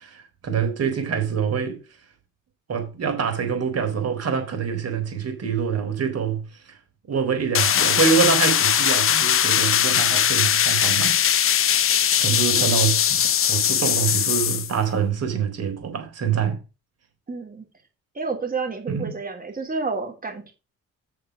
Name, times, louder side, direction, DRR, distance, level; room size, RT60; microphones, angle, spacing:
voice 1, 0.0-1.8 2.7-6.8 7.1-11.2 12.2-13.2 13.5-16.6 18.9-19.1, right 7 dB, 55° right, 4.1 m, -25 dB
sound 1, 7.5-14.7, left 9 dB, 45° left, 0.7 m, -20 dB
voice 2, 12.3-12.8 17.3-17.6 18.1-20.5, right 4 dB, 30° right, 3.3 m, -30 dB
7.6 x 6.6 x 6.3 m
cardioid pair, 90°, 30 cm